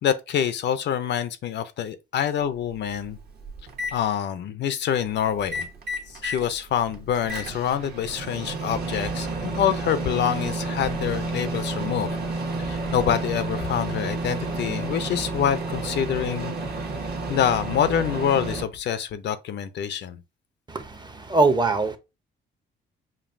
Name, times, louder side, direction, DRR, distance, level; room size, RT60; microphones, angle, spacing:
voice 1, 0.0-3.2 3.9-5.7 6.1-12.1 12.6-16.5 17.3-20.2, left 9 dB, 60° left, 0.5 m, -26 dB
Microwave oven, 2.4-2.5 3.0-3.9 5.4-6.5 6.9-18.6, right 2 dB, 55° right, 1.1 m, -30 dB
voice 2, 20.7-22.0, right 3 dB, 20° right, 0.7 m, -22 dB
5.2 x 2.6 x 2.5 m
cardioid pair, 90°, 20 cm